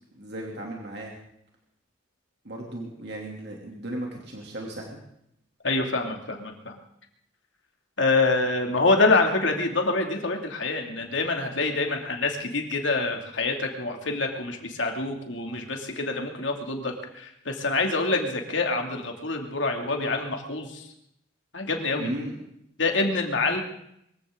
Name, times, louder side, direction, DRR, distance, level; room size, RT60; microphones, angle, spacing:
voice 1, 0.1-1.1 2.4-5.0 8.7-8.8 22.0-22.3, right 1 dB, 60° right, -1 dB, 3.0 m, -36 dB
voice 2, 5.6-6.8 8.0-20.8 21.5-22.1 22.8-23.6, left 3 dB, 70° left, 2 dB, 2.7 m, -26 dB
23.5 x 15.5 x 3.9 m, 0.75 s
head